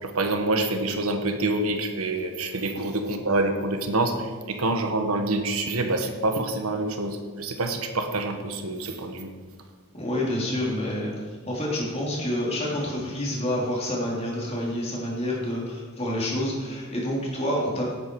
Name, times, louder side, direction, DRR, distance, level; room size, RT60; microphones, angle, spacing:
voice 1, 0.0-9.3, right 2 dB, 80° right, 6 dB, 1.4 m, -26 dB
voice 2, 9.9-11.1 11.5-17.9, left 1 dB, 30° left, -4 dB, 3.3 m, -28 dB
16.5 x 9.0 x 4.7 m, 1.5 s
head